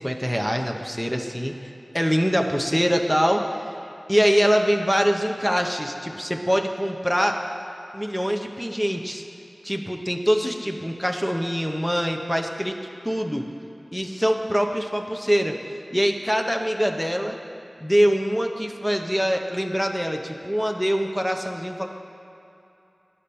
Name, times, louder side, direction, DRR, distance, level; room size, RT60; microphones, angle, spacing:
voice 1, 0.0-1.6 1.9-3.5 4.1-7.4 7.9-9.2 9.6-12.7 13.0-13.5 13.9-15.6 15.9-17.4 17.8-21.9, equal, 5° left, 3 dB, 0.7 m, -23 dB
10.0 x 4.3 x 6.8 m, 2.8 s
cardioid pair, 40°, 0 cm